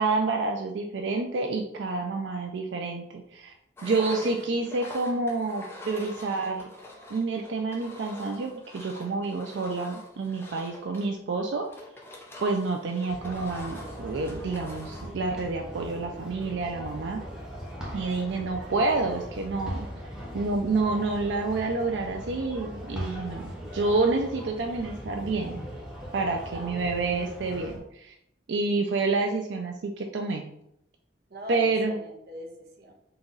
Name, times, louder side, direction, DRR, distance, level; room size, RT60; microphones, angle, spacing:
voice 1, 0.0-3.5 3.8-6.7 7.1-11.7 12.4-17.2 17.9-19.9 20.3-23.4 23.7-25.6 26.1-28.1 28.5-30.4 31.5-32.0, right 3 dB, 90° right, 3 dB, 0.4 m, -28 dB
Engine, 3.8-15.2, left 2 dB, 15° left, 0.7 m, -45 dB
voice 2, 3.8-4.6 26.2-26.8 31.3-32.9, right 1 dB, 60° right, 1 dB, 0.9 m, -42 dB
sound 1, 13.1-27.8, equal, 5° right, 1.1 m, -39 dB
3.9 x 2.9 x 3.8 m, 0.78 s
head